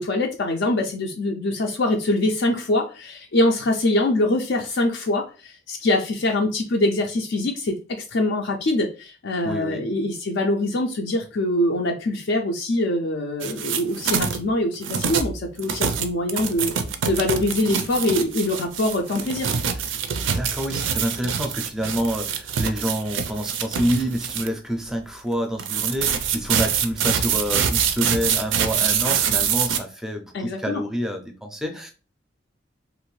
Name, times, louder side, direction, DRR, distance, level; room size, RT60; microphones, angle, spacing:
voice 1, 0.0-16.7 17.0-19.5 30.3-30.8, left 1 dB, 65° left, 2 dB, 0.4 m, -24 dB
voice 2, 9.4-9.9 20.2-31.9, equal, 5° right, 4 dB, 0.4 m, -28 dB
sound 1, 13.4-14.4 14.8-24.5 25.6-29.8, right 7 dB, 80° right, 0.4 m, -25 dB
3.0 x 2.5 x 3.1 m, 0.34 s
head